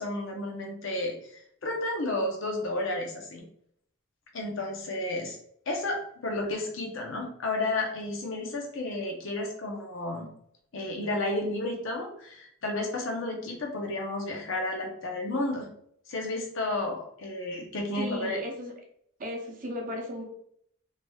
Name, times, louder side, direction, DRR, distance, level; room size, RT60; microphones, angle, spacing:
voice 1, 0.0-3.4 4.3-5.4 5.7-10.3 10.7-15.7 16.1-18.4, left 2 dB, 65° left, 1 dB, 0.7 m, -32 dB
voice 2, 17.9-18.7 19.2-20.2, equal, 40° right, 0 dB, 0.6 m, -35 dB
3.1 x 2.8 x 2.3 m, 0.68 s
head